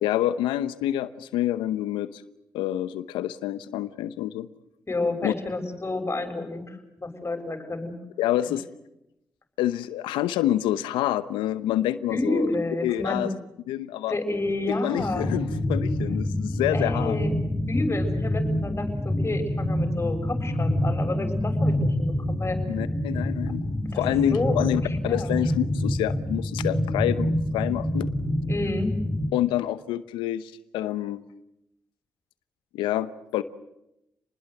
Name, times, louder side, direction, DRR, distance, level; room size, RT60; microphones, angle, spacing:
voice 1, 0.0-2.2 2.5-4.5 5.2-5.3 8.2-8.6 9.6-12.5 12.8-13.3 13.7-14.2 14.7-17.2 22.7-23.6 23.9-28.1 29.3-31.2 32.7-33.4, left 13 dB, 85° left, 15 dB, 0.9 m, -27 dB
voice 2, 4.9-7.9 12.1-13.3 14.1-15.3 16.7-17.4 17.7-22.6 23.9-24.0 24.3-24.6 25.0-25.3 28.5-28.9, left 2 dB, 30° left, 6 dB, 6.9 m, -30 dB
sound 1, 15.0-29.3, left 1 dB, 5° left, 6.2 m, -27 dB
28.5 x 20.5 x 8.0 m, 0.86 s
hypercardioid pair, 40°, 8 cm